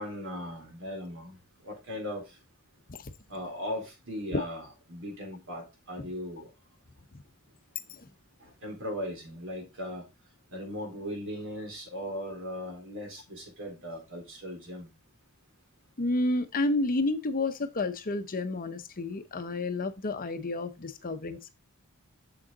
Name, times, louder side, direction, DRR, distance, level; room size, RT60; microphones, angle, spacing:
voice 1, 0.0-1.4 1.7-2.2 3.3-4.6 4.9-6.5 8.6-10.0 10.5-14.9, equal, 65° right, 4.0 m, -38 dB
voice 2, 16.0-21.5, left 2 dB, 40° left, 0.8 m, -30 dB
7.0 x 6.3 x 4.0 m
head